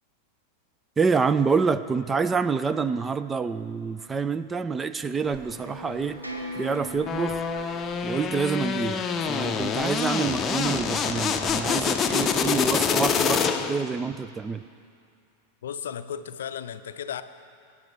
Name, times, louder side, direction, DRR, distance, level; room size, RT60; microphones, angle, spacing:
voice 1, 1.0-6.2 6.6-7.5 8.0-14.6, right 5 dB, 15° right, 14 dB, 0.4 m, -27 dB
sound 1, 4.0-10.2, right 1 dB, 85° right, 1.4 m, -42 dB
Bird, 5.2-12.3, right 2 dB, 35° right, 2.0 m, -49 dB
sound 2, 7.1-13.9, left 6 dB, 25° left, 0.7 m, -26 dB
voice 2, 15.6-17.2, left 8 dB, 60° left, 11 dB, 0.5 m, -34 dB
23.5 x 10.0 x 3.4 m, 2.4 s
figure-of-eight pair, 90°, 0 cm